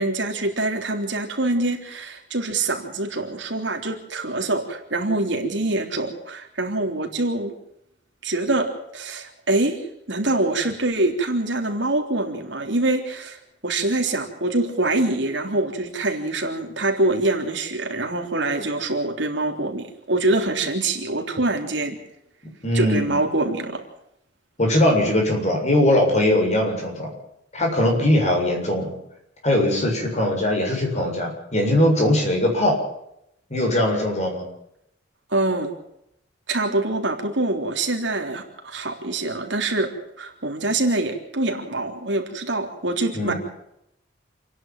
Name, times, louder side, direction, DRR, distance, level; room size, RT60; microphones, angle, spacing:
voice 1, 0.0-7.5 8.2-22.0 22.7-23.8 35.3-35.7 36.5-43.3, right 2 dB, 70° right, 3 dB, 3.5 m, -25 dB
voice 2, 22.6-23.2 24.6-27.1 27.5-29.0 29.4-32.7 33.5-34.5 43.1-43.4, left 1 dB, 40° left, 1 dB, 7.3 m, -20 dB
28.0 x 11.0 x 9.2 m, 0.78 s
head